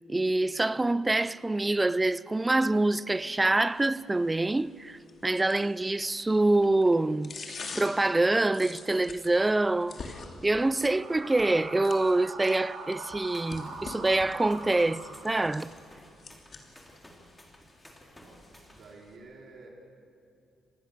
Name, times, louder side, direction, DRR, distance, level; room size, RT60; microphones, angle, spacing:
voice 1, 0.1-7.4 7.8-10.1 10.4-15.7, right 2 dB, 15° right, 0.5 m, -26 dB
sound 1, 3.2-19.2, left 4 dB, 45° left, 2.9 m, -48 dB
sound 2, 10.6-15.6, right 3 dB, 80° right, 5.4 m, -43 dB
sound 3, 13.0-18.9, left 1 dB, 10° left, 3.6 m, -54 dB
voice 2, 18.0-19.7, right 3 dB, 60° right, 4.8 m, -51 dB
26.5 x 19.5 x 6.8 m
cardioid pair, 90°, 0 cm